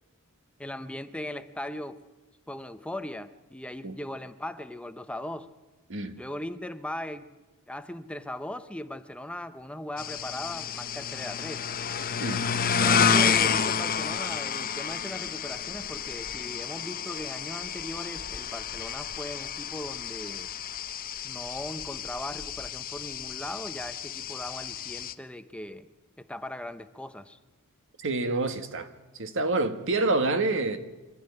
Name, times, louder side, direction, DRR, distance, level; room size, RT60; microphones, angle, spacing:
voice 1, 0.6-2.0 2.5-5.5 6.2-7.3 7.7-11.7 12.6-20.5 21.2-25.9 26.2-27.4, left 1 dB, 5° left, 0.7 m, -39 dB
sound 1, 10.0-25.1, left 6 dB, 40° left, 0.8 m, -30 dB
voice 2, 28.0-28.9 29.2-30.8, right 2 dB, 60° right, 1.7 m, -27 dB
25.0 x 13.0 x 9.8 m
head